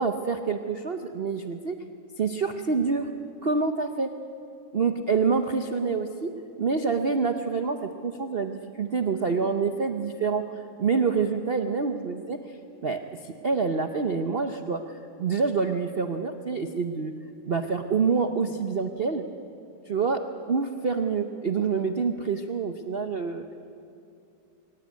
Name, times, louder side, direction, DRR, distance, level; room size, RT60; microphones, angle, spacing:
voice 1, 0.0-1.8 2.2-3.1 3.4-4.1 4.7-6.3 6.6-12.6 12.8-17.1 17.4-19.2 19.9-23.7, right 5 dB, 70° right, 7 dB, 0.5 m, -27 dB
22.5 x 18.5 x 9.4 m, 2.6 s
omnidirectional pair, 2.3 m